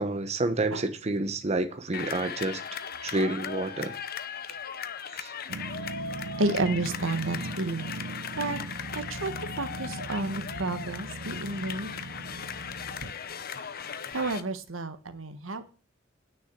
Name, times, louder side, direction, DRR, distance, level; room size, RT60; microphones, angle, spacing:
voice 1, 0.0-2.6 3.0-3.9 5.1-5.3, right 2 dB, 35° right, 0.9 m, -29 dB
sound 1, 1.9-14.4, left 7 dB, 50° left, 0.8 m, -38 dB
Growling, 5.5-13.2, right 2 dB, 65° right, 0.8 m, -39 dB
voice 2, 6.4-7.9 8.4-8.6 8.9-11.9 14.1-15.6, right 2 dB, 80° right, 1.3 m, -31 dB
9.7 x 6.2 x 8.2 m
head